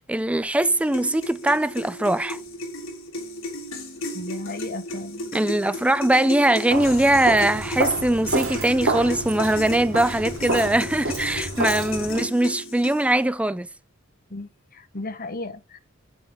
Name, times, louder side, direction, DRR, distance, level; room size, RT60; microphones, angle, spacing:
voice 1, 0.0-2.4 5.3-13.7, right 1 dB, 5° right, 0.4 m, -21 dB
sound 1, 0.6-13.2, left 1 dB, 75° left, 3.2 m, -35 dB
voice 2, 4.1-5.3 12.0-12.1 14.3-15.8, left 2 dB, 45° left, 1.2 m, -35 dB
Walk footsteps, 6.7-12.2, right 2 dB, 80° right, 2.5 m, -29 dB
7.7 x 7.3 x 6.3 m
head